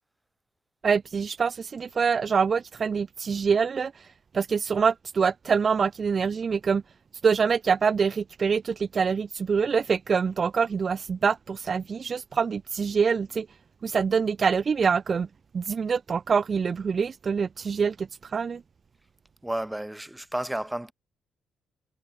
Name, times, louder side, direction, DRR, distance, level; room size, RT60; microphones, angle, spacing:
voice 1, 0.8-6.8 7.2-13.5 13.8-15.3 15.5-18.6, right 6 dB, 40° right, 0.3 m, -25 dB
voice 2, 19.4-20.9, right 1 dB, 5° right, 1.5 m, -31 dB
cardioid pair, 90°, 0 cm